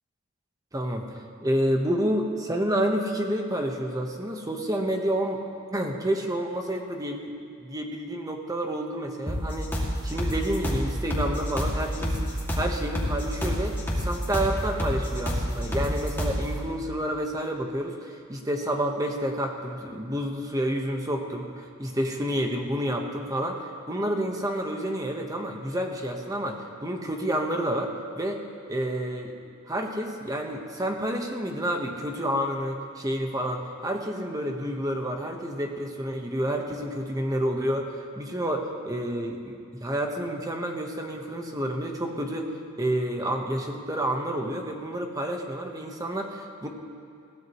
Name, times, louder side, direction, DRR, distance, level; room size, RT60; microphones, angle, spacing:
voice 1, 0.7-1.1 1.4-5.4 5.7-7.3 7.6-12.2 12.5-28.4 28.7-29.3 29.7-42.5 42.8-46.7, right 1 dB, 15° right, 2 dB, 1.2 m, -29 dB
sound 1, 9.3-16.5, equal, 10° left, 2.4 m, -28 dB
21.5 x 16.5 x 3.2 m, 2.5 s
head